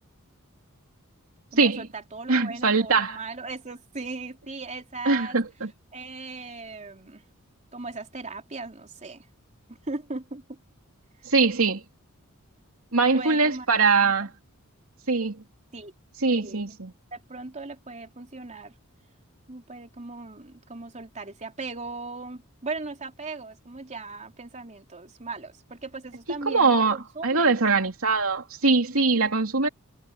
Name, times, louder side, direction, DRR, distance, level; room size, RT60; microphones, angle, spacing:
voice 1, 1.5-5.4 5.9-7.2 7.7-9.3 9.7-10.6 13.1-13.7 14.0-14.1 15.7-15.9 16.3-16.8 17.1-18.7 19.5-27.5, right 3 dB, 35° right, 3.4 m, -38 dB
voice 2, 2.3-3.2 5.0-5.7 11.2-11.8 12.9-14.3 15.1-15.4 16.2-16.9 26.4-27.0 27.2-29.7, right 4 dB, 70° right, 3.1 m, -22 dB
head